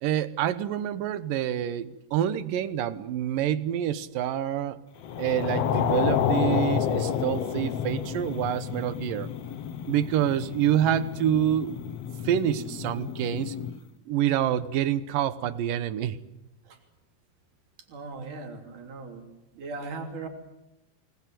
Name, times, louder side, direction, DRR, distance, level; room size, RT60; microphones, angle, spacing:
voice 1, 0.0-4.8 5.2-9.3 9.9-11.7 12.2-13.6 14.1-16.2, right 11 dB, 85° right, 14 dB, 2.8 m, -27 dB
sound 1, 5.0-13.8, left 8 dB, 60° left, 2.1 m, -30 dB
voice 2, 17.9-19.2 19.6-20.3, right 3 dB, 70° right, 3 dB, 4.7 m, -38 dB
28.0 x 20.0 x 7.8 m, 0.93 s
omnidirectional pair, 3.8 m